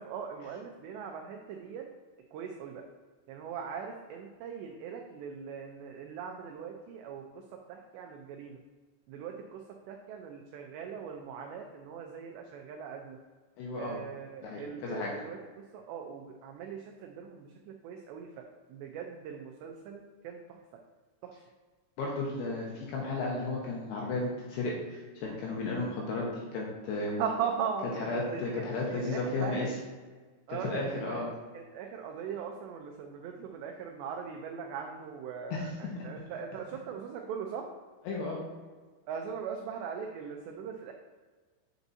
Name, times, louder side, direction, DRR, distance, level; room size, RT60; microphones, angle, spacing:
voice 1, 0.0-1.9 2.3-2.8 3.3-7.4 7.7-8.6 9.1-13.2 13.8-20.6 21.2-21.4 27.0-29.7 30.5-31.2 31.5-37.7 39.1-40.9, right 7 dB, 90° right, 2 dB, 2.4 m, -40 dB
voice 2, 13.6-14.0 14.4-15.1 22.0-26.3 26.5-27.2 28.1-29.7 30.6-31.3 35.5-35.6 38.1-38.4, left 3 dB, 70° left, -3 dB, 2.7 m, -33 dB
8.0 x 7.0 x 2.7 m, 1.4 s
omnidirectional pair, 5.7 m